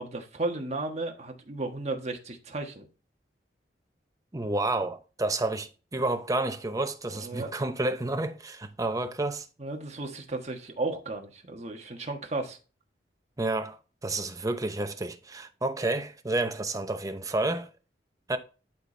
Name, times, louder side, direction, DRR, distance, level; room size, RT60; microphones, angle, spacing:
voice 1, 0.0-2.9 7.2-7.5 9.6-12.6, right 2 dB, 40° right, 1.4 m, -34 dB
voice 2, 4.3-9.5 13.4-13.8 14.0-17.7 18.3-18.4, right 2 dB, 20° right, 0.7 m, -30 dB
11.5 x 4.1 x 3.3 m
head